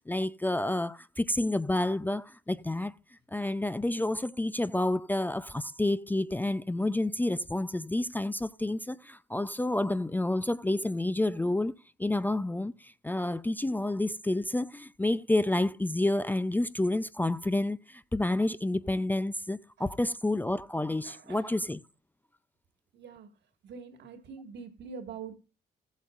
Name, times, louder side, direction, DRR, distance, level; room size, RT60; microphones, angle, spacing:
voice 1, 0.1-2.9 3.3-11.7 12.0-21.8, left 1 dB, 10° left, 0.5 m, -29 dB
voice 2, 21.0-21.5 22.9-23.3 23.6-25.4, right 6 dB, 65° right, 1.9 m, -44 dB
15.0 x 8.2 x 2.5 m
cardioid pair, 80°, 19 cm